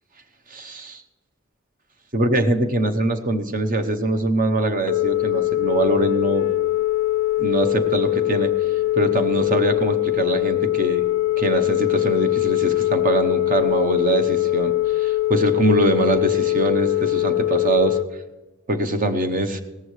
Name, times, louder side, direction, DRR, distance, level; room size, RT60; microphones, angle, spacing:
voice 1, 0.5-1.0 2.1-6.5 7.4-8.5 9.0-11.0 11.4-18.0 18.7-19.6, right 2 dB, 45° right, 8 dB, 0.9 m, -23 dB
Telephone, 4.8-18.0, left 15 dB, 90° left, 0.4 m, -22 dB
17.5 x 14.5 x 3.2 m, 1.2 s
head